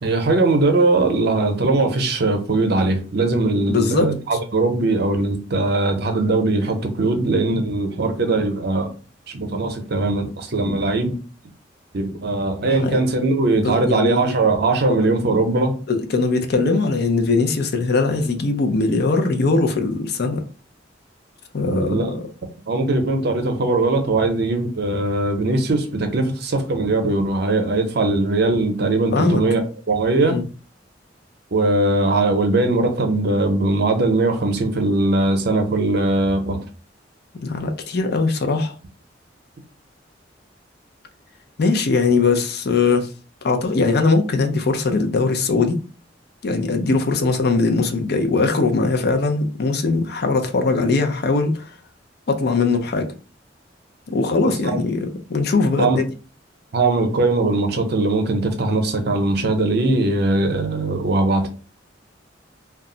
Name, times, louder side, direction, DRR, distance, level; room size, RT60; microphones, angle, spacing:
voice 1, 0.0-8.9 9.3-11.2 11.9-15.8 21.6-22.1 22.7-29.6 29.9-30.4 31.5-36.6 54.4-54.5 55.8-56.0 56.7-61.5, right 2 dB, 60° right, 0.6 m, -20 dB
voice 2, 3.7-4.1 7.3-7.4 10.6-10.8 12.8-13.0 13.5-14.2 14.9-15.1 15.9-20.4 21.5-22.2 29.1-29.4 30.3-30.4 37.4-38.7 41.6-43.1 43.4-45.8 46.4-51.7 52.3-53.1 54.1-56.1, left 3 dB, 60° left, 0.5 m, -20 dB
2.3 x 2.0 x 3.7 m
head